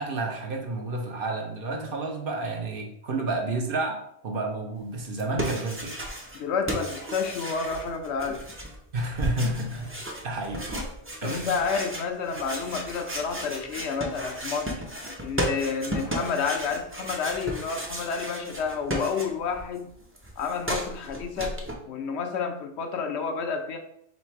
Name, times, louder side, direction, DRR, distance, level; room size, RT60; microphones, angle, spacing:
voice 1, 0.0-4.0 4.2-6.0 8.9-9.9 10.2-10.6 11.2-11.5, right 2 dB, 55° right, 2 dB, 0.8 m, -30 dB
sound 1, 5.0-6.4 6.7-19.6 19.9-21.7, right 1 dB, 15° right, 0.4 m, -34 dB
voice 2, 6.3-8.4 11.2-14.8 15.2-19.9 20.4-21.6 21.9-23.8, left 5 dB, 70° left, 5 dB, 0.8 m, -30 dB
3.3 x 3.2 x 4.5 m, 0.73 s
omnidirectional pair, 1.2 m